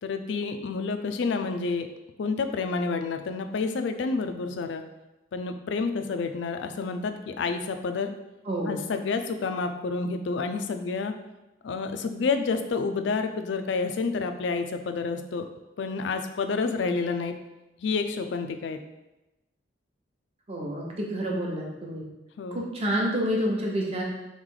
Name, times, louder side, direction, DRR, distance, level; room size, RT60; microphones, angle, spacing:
voice 1, 0.0-1.9 2.2-4.8 5.3-8.1 8.7-11.1 11.6-15.4 15.8-17.3 17.8-18.8 22.4-22.6, left 4 dB, 70° left, 7 dB, 0.4 m, -29 dB
voice 2, 8.4-8.8 20.5-22.0 22.5-24.0, equal, 30° right, -2 dB, 0.8 m, -28 dB
3.5 x 3.2 x 3.8 m, 1.0 s
head